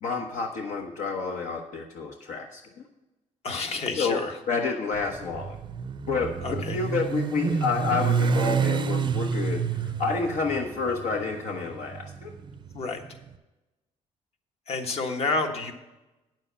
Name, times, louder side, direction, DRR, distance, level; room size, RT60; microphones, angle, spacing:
voice 1, 0.0-2.6 4.0-4.2 4.5-5.6 6.1-12.3, left 4 dB, 65° left, 2 dB, 1.0 m, -29 dB
voice 2, 3.4-4.4 6.4-6.8 12.7-13.0 14.7-15.7, left 3 dB, 50° left, 4 dB, 1.4 m, -29 dB
Motorcycle, 4.9-13.1, right 6 dB, 35° right, 0.5 m, -29 dB
9.1 x 7.6 x 5.5 m, 1.0 s
cardioid pair, 115°, 13 cm